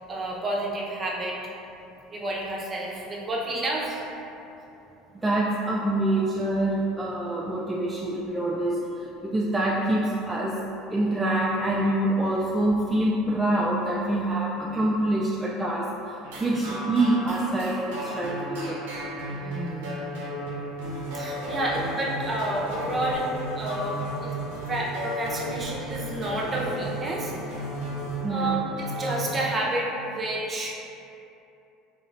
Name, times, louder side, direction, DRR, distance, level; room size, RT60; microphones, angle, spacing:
voice 1, 0.1-1.5 2.1-4.0 14.2-14.3 14.6-14.8 16.4-16.6 19.3-20.0 21.1-23.3 23.6-24.3 24.7-27.3 28.3-28.6 29.0-30.7, right 1 dB, 30° right, -3 dB, 0.8 m, -30 dB
voice 2, 5.1-8.8 9.2-10.6 10.9-15.9 16.4-18.8 28.2-28.6, right 1 dB, 10° right, -5 dB, 0.4 m, -25 dB
sound 1, 16.2-29.4, right 1 dB, 75° right, 0.6 m, -34 dB
sound 2, 20.8-28.2, left 1 dB, 85° left, 0.9 m, -42 dB
3.8 x 3.0 x 2.5 m, 2.8 s
hypercardioid pair, 80°, 0 cm